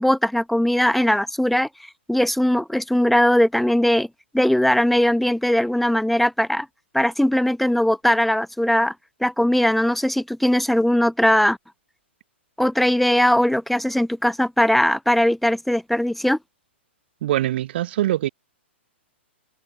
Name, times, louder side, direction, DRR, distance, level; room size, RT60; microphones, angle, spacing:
voice 1, 0.0-1.7 2.1-4.1 4.3-6.7 6.9-8.9 9.2-11.6 12.6-16.4, left 1 dB, ahead, 1.6 m, -19 dB
voice 2, 17.2-18.3, right 13 dB, 55° right, 6.1 m, -23 dB
open air
hypercardioid pair, 120°, 7 cm